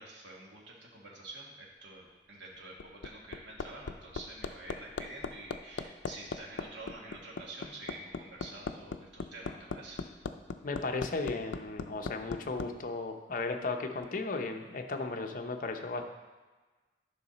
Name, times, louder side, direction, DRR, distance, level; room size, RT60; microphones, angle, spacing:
voice 1, 0.0-10.0, right 2 dB, 75° right, -2 dB, 1.5 m, -48 dB
Hammer, 2.5-12.7 14.0-14.1, left 4 dB, 85° left, 0.4 m, -38 dB
voice 2, 10.6-16.1, left 3 dB, 50° left, 5 dB, 0.7 m, -35 dB
10.0 x 5.7 x 4.1 m, 1.3 s
head